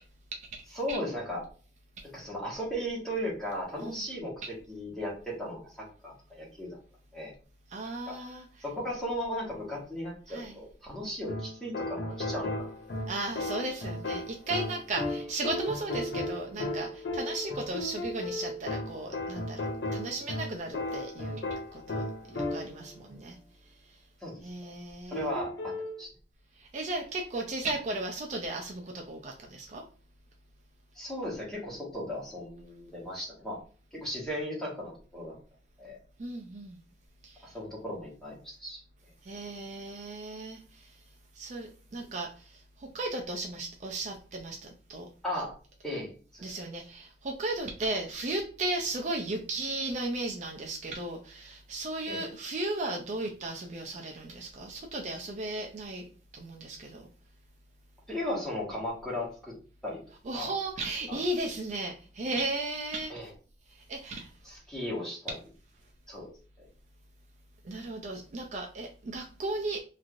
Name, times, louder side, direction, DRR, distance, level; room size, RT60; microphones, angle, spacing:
voice 1, 0.7-1.5 2.1-6.8 7.1-7.3 8.1-8.2 8.6-12.7 24.2-24.4 25.1-26.1 30.9-33.6 33.9-35.4 35.8-36.0 37.4-38.8 45.2-45.5 45.8-46.6 52.1-52.2 58.1-59.5 59.8-60.0 60.3-60.5 61.1-61.2 63.1-63.3 64.4-65.3 66.1-66.3 66.6-66.7, equal, 5° left, -5 dB, 1.1 m, -36 dB
voice 2, 7.7-8.5 10.3-10.6 13.1-19.7 19.9-21.4 21.7-22.0 22.3-23.4 24.4-25.3 26.6-29.8 36.2-36.8 37.2-37.4 39.3-40.9 41.4-45.1 46.4-56.0 56.3-57.0 60.2-63.1 63.9-64.3 67.6-69.8, right 2 dB, 40° right, 1 dB, 0.4 m, -35 dB
sound 1, 11.3-22.9 25.1-26.0, left 2 dB, 65° left, 0.7 m, -35 dB
3.1 x 2.5 x 2.4 m, 0.40 s
head